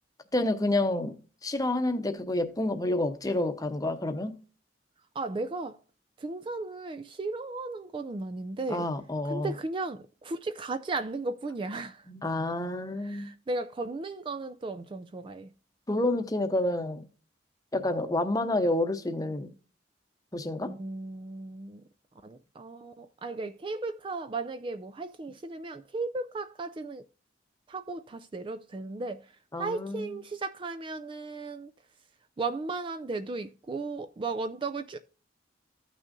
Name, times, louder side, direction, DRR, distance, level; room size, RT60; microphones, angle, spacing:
voice 1, 0.3-1.2 1.4-4.4 8.7-9.5 12.1-13.3 15.9-17.0 17.7-19.5 20.3-20.7 29.5-30.2, left 1 dB, 20° left, 0.8 m, -29 dB
voice 2, 5.1-5.8 6.2-8.9 9.2-12.1 13.0-15.5 20.6-21.8 22.2-27.1 27.7-31.7 32.4-35.0, right 3 dB, 25° right, 0.3 m, -35 dB
15.0 x 6.2 x 2.6 m
head